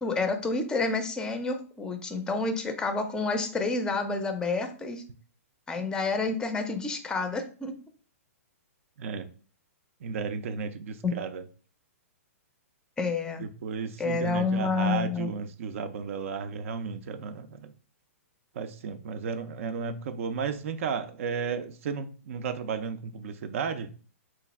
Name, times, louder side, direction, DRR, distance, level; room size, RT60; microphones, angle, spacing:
voice 1, 0.0-5.0 5.7-7.7 11.0-11.1 13.0-13.4 14.0-15.3, left 3 dB, 10° left, 0.5 m, -29 dB
voice 2, 10.0-11.4 13.4-17.7 18.6-23.9, right 5 dB, 60° right, 0.4 m, -33 dB
3.1 x 2.4 x 4.0 m
hypercardioid pair, 140°, 8 cm